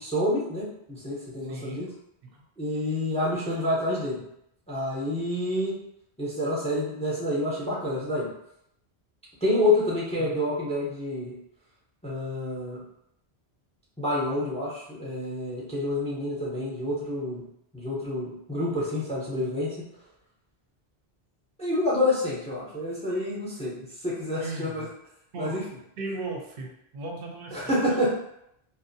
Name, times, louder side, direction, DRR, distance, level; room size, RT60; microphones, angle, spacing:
voice 1, 0.0-1.9 2.6-4.3 4.7-5.8 6.2-8.3 9.4-11.3 12.0-12.8 14.0-17.4 17.7-19.7 21.6-24.9 25.4-25.6 27.5-28.2, left 1 dB, 10° left, -6 dB, 0.5 m, -28 dB
voice 2, 1.4-1.8 10.2-10.4 24.4-24.9 25.3-25.6 26.0-27.7, right 2 dB, 65° right, 1 dB, 0.7 m, -36 dB
2.5 x 2.0 x 2.6 m, 0.77 s
omnidirectional pair, 1.1 m